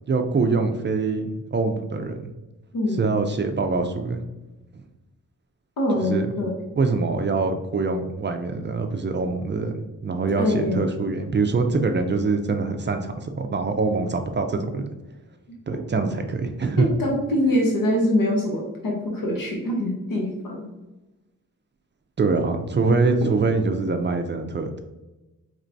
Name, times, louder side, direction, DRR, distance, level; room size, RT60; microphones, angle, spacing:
voice 1, 0.1-2.3 3.0-4.2 6.0-6.3 6.8-14.9 15.7-16.8 22.2-24.8, right 4 dB, 35° right, 6 dB, 0.4 m, -24 dB
voice 2, 5.8-6.5 10.3-10.8 16.8-20.6, left 1 dB, 75° left, -1 dB, 0.9 m, -24 dB
4.4 x 3.0 x 2.6 m, 1.0 s
wide cardioid pair, 140°, 34 cm